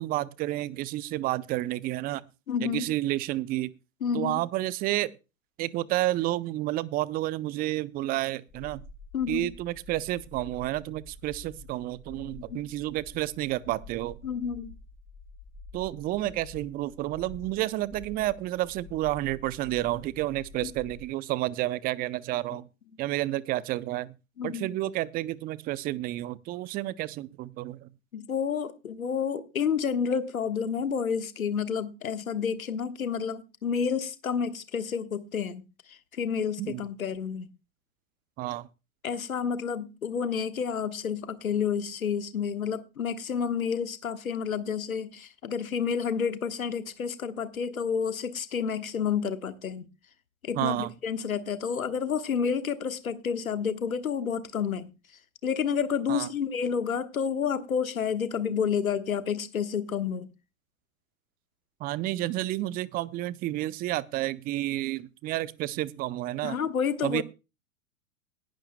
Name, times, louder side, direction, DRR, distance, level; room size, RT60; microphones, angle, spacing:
voice 1, 0.0-2.2 2.6-3.7 4.1-5.1 5.6-8.8 9.3-14.2 15.7-22.7 23.0-24.1 24.4-27.9 36.6-36.8 38.4-38.7 50.5-50.9 56.1-56.3 61.8-66.6 67.0-67.2, right 16 dB, 20° right, 0.5 m, -30 dB
voice 2, 2.5-2.9 4.0-4.4 9.1-9.5 12.5-12.6 14.2-14.7 20.6-20.7 24.4-24.7 28.1-37.5 39.0-49.9 50.4-54.9 55.4-60.3 66.4-67.2, left 7 dB, 80° left, 1.4 m, -30 dB
sound 1, 8.5-21.1, left 3 dB, 20° left, 5.0 m, -48 dB
19.0 x 11.5 x 2.2 m
figure-of-eight pair, 100°, 41 cm